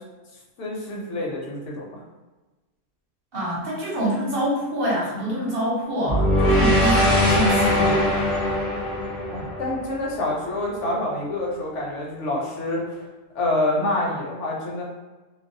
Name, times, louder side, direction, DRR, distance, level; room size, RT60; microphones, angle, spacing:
voice 1, 0.6-2.0 9.3-13.0 13.3-14.8, left 1 dB, 70° left, -3 dB, 1.0 m, -27 dB
voice 2, 3.3-8.1, right 1 dB, 50° right, -5 dB, 0.9 m, -26 dB
sound 1, 6.1-10.3, left 1 dB, 50° left, 0.5 m, -21 dB
2.5 x 2.0 x 2.6 m, 1.2 s
omnidirectional pair, 1.3 m